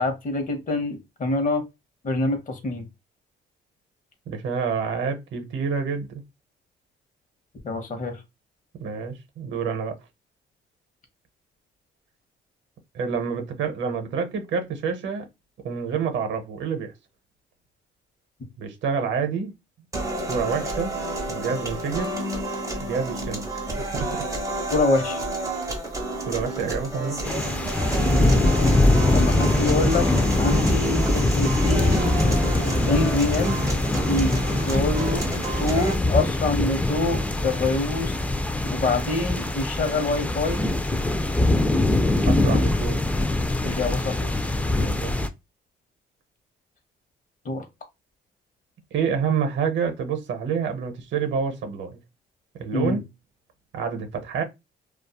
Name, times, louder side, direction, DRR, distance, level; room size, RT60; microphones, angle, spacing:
voice 1, 0.0-1.6 2.0-2.9 7.6-8.2 24.7-25.2 28.1-28.3 29.1-30.1 30.4-32.1 32.8-33.6 34.1-34.4 34.7-35.3 35.6-38.2 38.7-40.6 43.6-44.4 47.4-47.6 52.7-53.0, left 2 dB, 40° left, 0.9 m, -25 dB
voice 2, 4.3-6.2 8.8-10.0 12.9-15.3 15.6-16.9 18.6-19.5 20.3-20.9 21.3-22.2 22.8-23.4 23.8-24.2 26.3-27.2 28.9-29.2 42.3-43.0 44.8-45.1 48.9-52.0 52.6-53.0 53.7-54.4, right 6 dB, 70° right, 0.7 m, -28 dB
sound 1, 19.9-35.9, right 1 dB, 15° right, 1.1 m, -30 dB
sound 2, 27.2-45.3, left 2 dB, 5° left, 0.3 m, -23 dB
2.6 x 2.3 x 2.2 m
cardioid pair, 90°, 20 cm